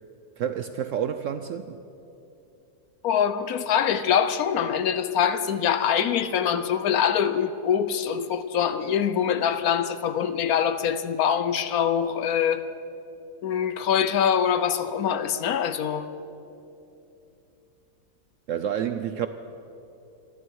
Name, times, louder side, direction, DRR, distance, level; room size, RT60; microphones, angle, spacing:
voice 1, 0.4-1.8 18.5-19.3, right 9 dB, 70° right, 10 dB, 0.8 m, -29 dB
voice 2, 3.0-12.6 13.4-16.1, left 8 dB, 70° left, 12 dB, 1.1 m, -24 dB
28.0 x 11.0 x 4.7 m, 2.8 s
omnidirectional pair, 1.8 m